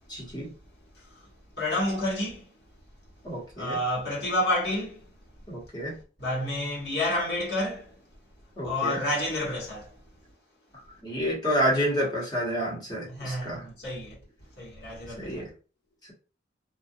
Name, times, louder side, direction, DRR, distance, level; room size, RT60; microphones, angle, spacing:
voice 1, 0.1-0.5 3.2-3.8 5.5-6.0 8.6-9.0 11.0-13.6 15.2-15.5, equal, 20° left, 1.1 m, -29 dB
voice 2, 0.9-1.3 1.5-2.5 3.5-5.1 6.2-8.0 8.6-10.0 13.1-14.2 14.6-15.4, left 1 dB, 60° left, 1.3 m, -30 dB
2.4 x 2.4 x 2.6 m
head